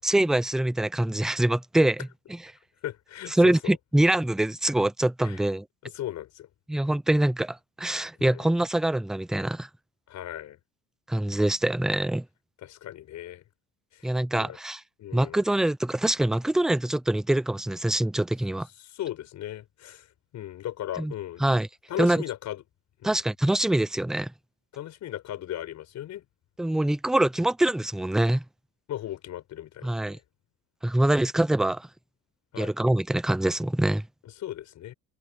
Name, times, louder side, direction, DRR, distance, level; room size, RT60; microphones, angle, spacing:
voice 1, 0.0-2.1 3.3-5.7 6.7-9.7 11.1-12.2 14.0-14.8 15.1-18.7 21.0-21.1 21.4-21.7 22.0-22.2 23.0-24.3 26.6-28.4 29.8-30.2 30.8-31.9 32.6-34.0, right 1 dB, ahead, 0.4 m, -24 dB
voice 2, 2.8-3.8 5.2-5.4 5.8-6.5 8.2-8.5 10.1-10.6 12.6-13.4 13.9-14.6 15.0-15.4 18.8-20.1 20.3-21.4 21.9-22.6 23.0-23.2 24.7-26.2 28.9-30.2 32.5-32.7 34.4-34.9, left 12 dB, 55° left, 6.5 m, -37 dB
cardioid pair, 160°, 34 cm